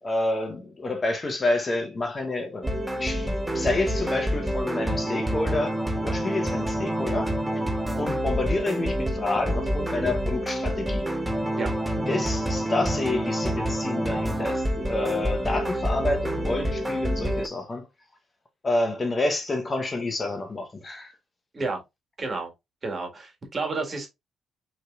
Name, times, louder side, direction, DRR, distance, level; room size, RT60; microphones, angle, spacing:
voice 1, 0.0-2.7 3.0-7.4 8.0-11.1 12.1-17.9 18.6-21.1, left 2 dB, 30° left, 0.9 m, -29 dB
sound 1, 2.6-17.5, equal, 10° right, 0.6 m, -27 dB
voice 2, 22.2-22.5 22.8-24.1, right 3 dB, 35° right, 1.6 m, -30 dB
5.5 x 3.2 x 2.4 m
cardioid pair, 90°, 0 cm